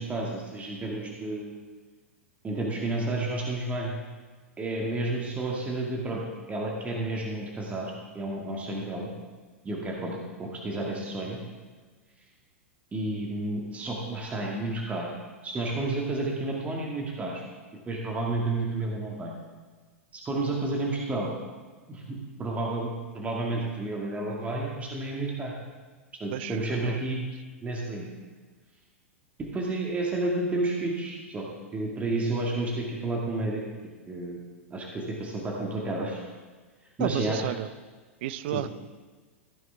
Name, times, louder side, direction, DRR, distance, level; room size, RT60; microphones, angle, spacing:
voice 1, 0.0-1.5 2.4-3.9 4.6-6.2 6.5-9.1 9.6-11.4 12.9-15.1 15.4-17.3 17.9-19.3 20.1-21.3 21.9-25.5 26.2-27.3 27.6-28.1 29.5-31.5 31.7-33.6 34.1-34.4 34.7-36.2 37.0-37.5 38.5-38.6, right 2 dB, 20° right, -2 dB, 2.0 m, -31 dB
voice 2, 26.3-27.0 37.0-37.7 38.2-38.7, right 12 dB, 55° right, 14 dB, 0.5 m, -32 dB
15.0 x 9.1 x 3.5 m, 1.4 s
figure-of-eight pair, 95°, 7 cm